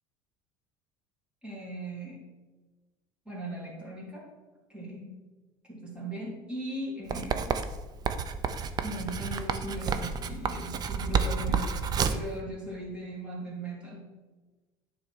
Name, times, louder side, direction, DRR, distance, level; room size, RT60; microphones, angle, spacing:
voice 1, 1.4-2.2 3.2-4.3 4.7-5.1 5.7-7.6 8.8-14.1, right 1 dB, 10° right, -5 dB, 2.9 m, -39 dB
Writing, 7.1-12.3, right 6 dB, 35° right, 0.6 m, -30 dB
10.0 x 4.0 x 6.0 m, 1.2 s
supercardioid pair, 125°, 12 cm